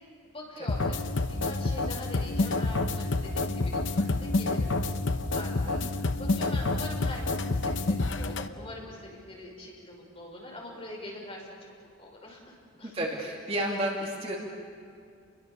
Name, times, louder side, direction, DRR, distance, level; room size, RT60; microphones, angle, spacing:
voice 1, 0.2-4.7 5.1-11.5 12.0-12.9, left 1 dB, 30° left, -2 dB, 5.8 m, -43 dB
sound 1, 0.7-8.5, left 2 dB, 60° left, 0.9 m, -28 dB
voice 2, 5.6-6.0 12.8-14.4, right 1 dB, 30° right, -2 dB, 2.7 m, -32 dB
29.0 x 22.5 x 7.0 m, 2.3 s
head